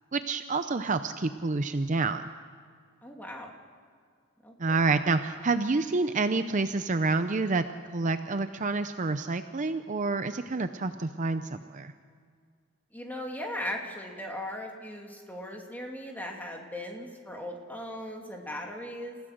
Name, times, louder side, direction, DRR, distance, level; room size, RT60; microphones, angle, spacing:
voice 1, 0.1-2.2 4.6-7.6 7.9-11.9, right 3 dB, 35° right, 10 dB, 0.6 m, -28 dB
voice 2, 3.0-3.5 4.4-5.0 12.9-19.2, left 1 dB, 10° left, 1 dB, 2.6 m, -38 dB
29.0 x 16.0 x 6.5 m, 2.1 s
head